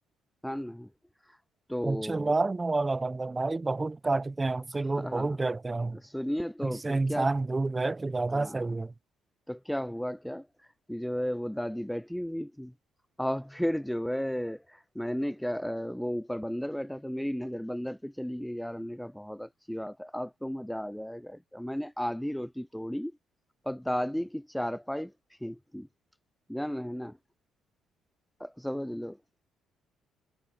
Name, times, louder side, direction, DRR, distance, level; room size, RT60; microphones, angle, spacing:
voice 1, 0.4-0.9 1.2-1.4 1.7-2.4 4.7-5.4 5.9-7.3 8.3-8.7 9.5-12.7 13.2-23.1 23.6-25.9 26.5-27.2 28.4-29.2, equal, 5° left, 0.5 m, -34 dB
voice 2, 1.8-6.0 6.6-8.9, right 3 dB, 25° right, 0.9 m, -29 dB
supercardioid pair, 60°, 0 cm